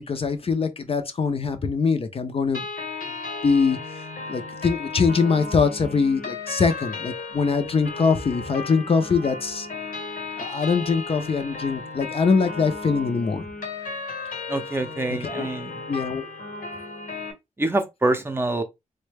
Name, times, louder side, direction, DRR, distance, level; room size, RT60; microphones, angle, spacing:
voice 1, 0.1-2.6 3.4-4.0 4.3-9.7 10.4-13.4 15.1-15.5 15.9-16.3, left 5 dB, 45° left, 0.5 m, -23 dB
sound 1, 2.5-17.3, left 3 dB, 80° left, 1.0 m, -35 dB
voice 2, 14.5-15.8 17.6-18.6, right 2 dB, 15° right, 0.5 m, -25 dB
3.8 x 2.1 x 3.2 m
wide cardioid pair, 130°, 14 cm